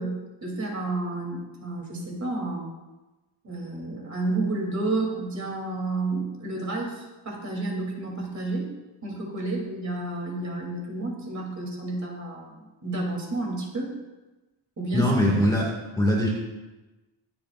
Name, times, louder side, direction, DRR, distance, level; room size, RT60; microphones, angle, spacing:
voice 1, 0.0-2.7 3.4-8.7 9.0-12.5 12.8-13.9 14.8-15.1, right 2 dB, 35° right, -2 dB, 3.2 m, -30 dB
voice 2, 14.9-16.3, left 1 dB, 10° left, -3 dB, 2.1 m, -22 dB
24.0 x 8.7 x 2.5 m, 1.1 s
cardioid pair, 160°, 50 cm